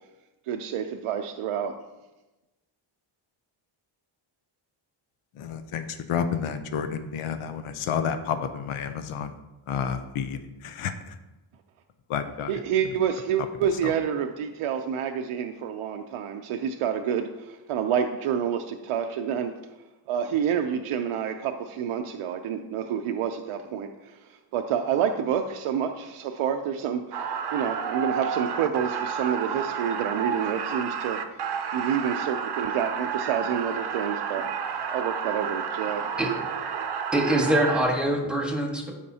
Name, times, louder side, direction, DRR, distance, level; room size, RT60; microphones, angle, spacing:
voice 1, 0.5-1.7 12.5-19.5 20.1-31.4 31.7-34.6 34.9-36.1, right 8 dB, 85° right, 4 dB, 0.7 m, -28 dB
voice 2, 5.5-5.8 6.1-7.6 7.9-8.4 8.7-9.3 9.7-10.4 10.8-10.9 12.1-12.5, left 7 dB, 80° left, 8 dB, 0.8 m, -29 dB
sound 1, 27.1-37.8, right 7 dB, 50° right, 0.7 m, -31 dB
voice 3, 37.1-38.9, right 1 dB, ahead, 0 dB, 1.5 m, -24 dB
13.0 x 5.2 x 2.8 m, 1.0 s
cardioid pair, 125°, 50 cm